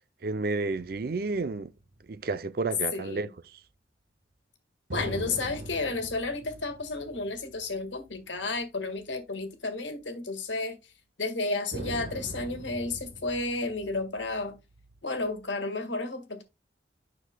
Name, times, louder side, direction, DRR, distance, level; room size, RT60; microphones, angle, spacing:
voice 1, 0.2-1.7 2.1-3.6, right 3 dB, 55° right, 0.5 m, -31 dB
sound 1, 0.6-2.5 4.9-8.6 9.0-9.1 11.7-15.4, right 1 dB, 70° right, 1.4 m, -42 dB
voice 2, 2.9-3.3 4.9-10.8 11.2-14.5 15.0-16.4, left 3 dB, 90° left, 1.6 m, -32 dB
9.8 x 6.2 x 2.2 m
head